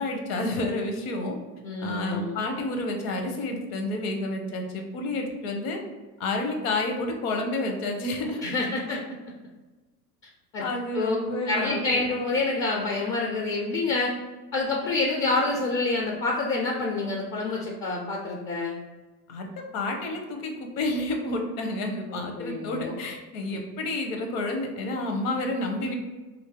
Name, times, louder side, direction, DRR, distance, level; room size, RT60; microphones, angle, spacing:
voice 1, 0.0-1.4 1.8-5.8 6.2-8.4 8.9-9.0 10.6-12.0 19.3-19.5 19.7-25.9, left 2 dB, 55° left, 3 dB, 0.9 m, -30 dB
voice 2, 1.6-2.4 8.4-9.0 10.5-10.7 10.9-11.2 11.5-14.1 14.5-18.8 22.1-23.0, left 3 dB, 30° left, -1 dB, 0.4 m, -27 dB
2.7 x 2.6 x 3.6 m, 1.2 s
hypercardioid pair, 90°, 48 cm